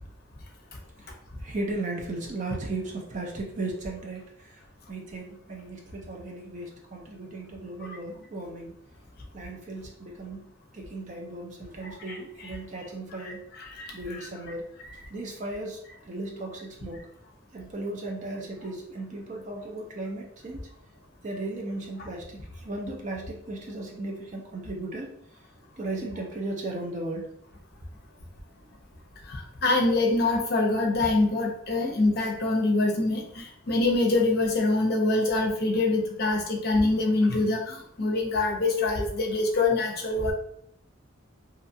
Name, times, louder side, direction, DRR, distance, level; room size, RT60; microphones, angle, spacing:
voice 1, 1.4-4.6 4.9-8.7 9.3-13.4 13.9-14.6 15.1-17.0 17.5-20.6 21.2-25.1 25.8-27.3, right 2 dB, 35° right, 0 dB, 0.5 m, -36 dB
voice 2, 11.8-12.2 13.8-13.9 29.3-40.3, left 2 dB, 50° left, 1 dB, 0.6 m, -25 dB
2.7 x 2.3 x 2.6 m, 0.68 s
head